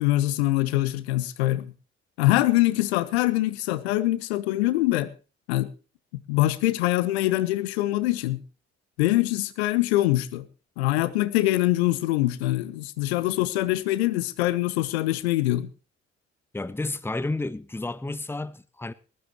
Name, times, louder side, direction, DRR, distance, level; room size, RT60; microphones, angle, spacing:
voice 1, 0.0-1.6 2.2-5.1 5.5-5.7 6.3-8.4 9.0-10.4 10.8-15.7, left 17 dB, 70° left, 1.0 m, -24 dB
voice 2, 16.5-18.9, left 2 dB, 5° left, 0.9 m, -31 dB
20.5 x 14.5 x 3.0 m
figure-of-eight pair, 45°, 33 cm